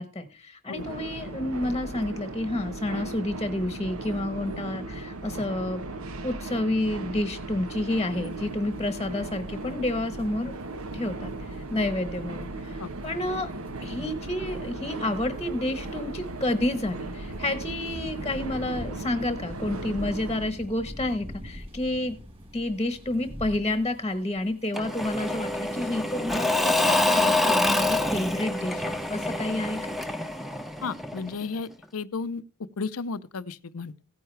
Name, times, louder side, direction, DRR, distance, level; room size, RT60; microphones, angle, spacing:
voice 1, 0.0-5.8 6.2-10.5 10.9-12.8 13.0-13.5 13.8-22.2 22.5-29.9, left 1 dB, 15° left, 1.1 m, -30 dB
sound 1, 0.8-20.5, right 2 dB, 80° right, 1.1 m, -37 dB
sound 2, 7.9-26.2, equal, 25° right, 3.2 m, -46 dB
Engine / Mechanisms / Drill, 24.7-31.4, left 2 dB, ahead, 0.8 m, -26 dB
voice 2, 30.8-32.4 32.8-33.9, left 4 dB, 85° left, 0.7 m, -33 dB
16.0 x 9.4 x 3.3 m
head